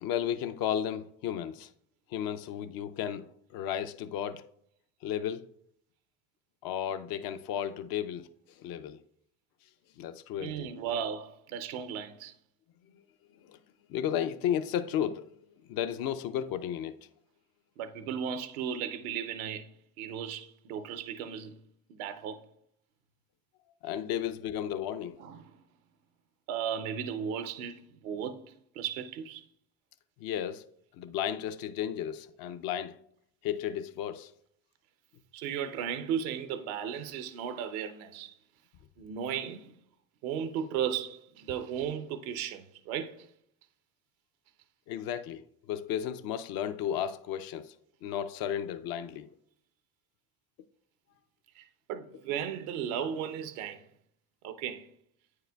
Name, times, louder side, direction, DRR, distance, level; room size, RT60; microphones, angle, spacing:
voice 1, 0.0-1.7 2.1-4.4 5.0-5.4 6.6-8.3 8.6-9.0 10.0-10.7 12.9-13.0 13.4-13.6 13.9-15.3 15.7-16.9 23.8-25.2 30.2-30.7 31.0-32.9 33.4-34.3 44.9-45.4 45.7-47.7 48.0-49.3, left 10 dB, 55° left, 0.5 m, -33 dB
voice 2, 10.4-12.3 17.8-19.7 20.0-21.5 21.9-22.4 25.2-25.5 26.5-28.4 28.8-29.4 35.3-38.4 39.0-39.7 40.2-43.2 51.6-51.7 51.9-53.8 54.4-54.9, right 8 dB, 75° right, 0.6 m, -35 dB
8.9 x 4.8 x 2.3 m
hypercardioid pair, 60°, 43 cm